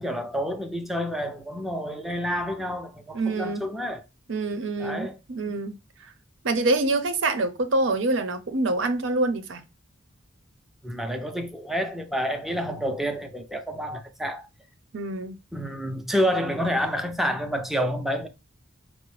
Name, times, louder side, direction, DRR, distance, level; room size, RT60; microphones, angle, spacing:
voice 1, 0.0-4.0 4.8-5.2 10.8-14.5 15.5-18.3, equal, ahead, 0.4 m, -29 dB
voice 2, 3.1-3.6 4.3-5.8 6.4-9.6 14.9-15.4, right 2 dB, 85° right, 0.6 m, -26 dB
4.9 x 2.1 x 3.1 m
head